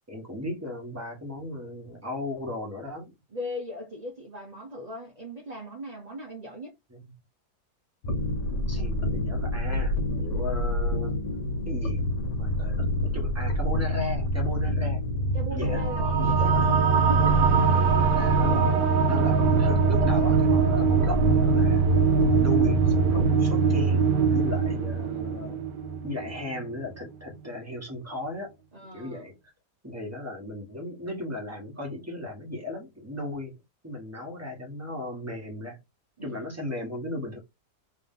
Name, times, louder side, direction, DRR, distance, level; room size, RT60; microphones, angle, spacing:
voice 1, 0.1-3.1 6.9-7.1 8.5-11.2 11.6-12.1 12.4-15.0 15.5-15.9 16.2-16.6 17.7-21.9 22.3-25.6 26.0-28.5 28.9-29.3 29.8-33.6 33.8-35.8 36.2-37.4, left 1 dB, 10° right, 1.4 m, -36 dB
voice 2, 3.3-6.7 15.3-17.5 24.9-25.8 28.7-29.3 36.2-36.6, equal, 35° right, 0.7 m, -39 dB
sound 1, 8.0-23.3, left 1 dB, 50° left, 1.4 m, -28 dB
sound 2, 15.7-26.6, right 5 dB, 85° right, 1.2 m, -23 dB
3.3 x 3.2 x 3.7 m
omnidirectional pair, 1.8 m